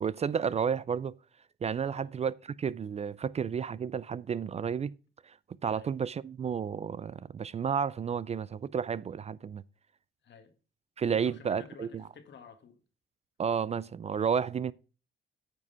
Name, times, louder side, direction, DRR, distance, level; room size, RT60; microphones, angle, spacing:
voice 1, 0.0-1.1 1.6-4.9 5.2-5.4 5.6-9.6 11.0-12.0 13.4-14.7, right 7 dB, 35° right, 0.4 m, -31 dB
voice 2, 10.2-10.5 11.1-12.8, left 6 dB, 60° left, 1.9 m, -52 dB
9.4 x 5.0 x 5.5 m
cardioid pair, 90°, 20 cm